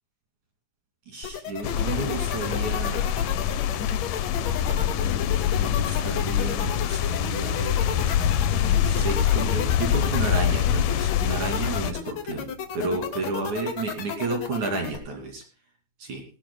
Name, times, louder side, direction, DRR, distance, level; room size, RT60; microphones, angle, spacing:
voice 1, 1.1-3.1 5.6-12.5 12.7-15.4 16.0-16.2, right 3 dB, 55° right, 3 dB, 3.8 m, -32 dB
sound 1, 1.2-15.0, left 7 dB, 50° left, 2.8 m, -33 dB
sound 2, 1.6-11.9, left 9 dB, 70° left, 2.3 m, -25 dB
19.0 x 18.5 x 2.2 m, 0.33 s
omnidirectional pair, 4.4 m